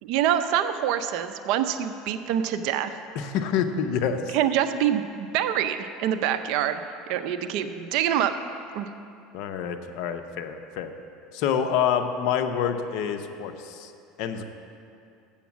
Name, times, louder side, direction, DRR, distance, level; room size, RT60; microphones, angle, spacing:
voice 1, 0.0-2.9 4.3-6.8 7.1-8.3 8.7-8.9, right 10 dB, 65° right, 10 dB, 0.5 m, -25 dB
voice 2, 3.2-4.4 9.3-10.9 11.3-13.9 14.2-14.4, left 7 dB, 60° left, 7 dB, 0.6 m, -27 dB
7.2 x 7.1 x 7.2 m, 2.5 s
supercardioid pair, 145°, 0 cm